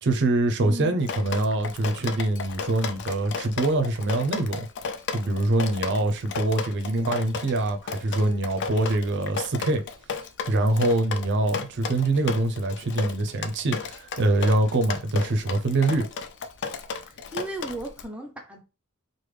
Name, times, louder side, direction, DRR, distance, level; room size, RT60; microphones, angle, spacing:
voice 1, 0.0-4.7 5.1-9.8 10.5-16.1, right 2 dB, 55° right, 0.5 m, -24 dB
voice 2, 0.6-1.0 16.9-18.6, right 2 dB, 5° right, 0.5 m, -36 dB
Drip, 1.0-18.0, left 5 dB, 55° left, 0.4 m, -34 dB
3.2 x 2.1 x 3.2 m
head